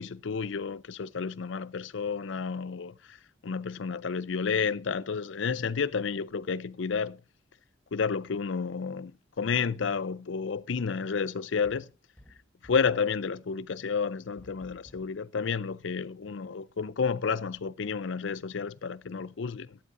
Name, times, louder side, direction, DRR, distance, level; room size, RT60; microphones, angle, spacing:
voice 1, 0.0-7.2 7.9-11.9 12.6-19.8, left 5 dB, 65° left, 0.5 m, -31 dB
sound 1, 11.6-13.0 14.4-15.2, equal, 10° left, 1.6 m, -55 dB
12.0 x 12.0 x 2.6 m
head